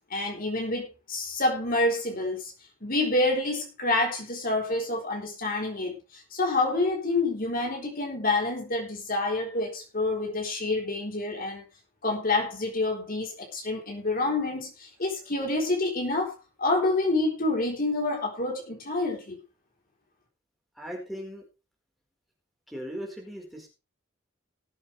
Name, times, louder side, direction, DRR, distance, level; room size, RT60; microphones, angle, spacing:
voice 1, 0.1-2.5 2.8-11.6 12.0-19.4, left 2 dB, 45° left, 1 dB, 3.8 m, -28 dB
voice 2, 20.8-21.4 22.7-23.7, equal, ahead, -1 dB, 4.4 m, -38 dB
19.5 x 8.2 x 3.3 m, 0.28 s
head